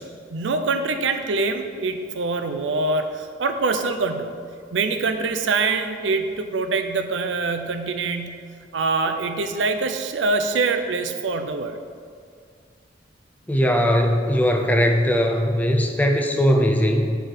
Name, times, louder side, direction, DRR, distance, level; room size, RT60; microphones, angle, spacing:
voice 1, 0.0-4.4 4.7-8.5 8.7-11.8, right 3 dB, 80° right, 7 dB, 0.5 m, -24 dB
voice 2, 13.5-17.2, equal, 10° left, 3 dB, 0.5 m, -19 dB
7.6 x 4.6 x 5.0 m, 2.1 s
head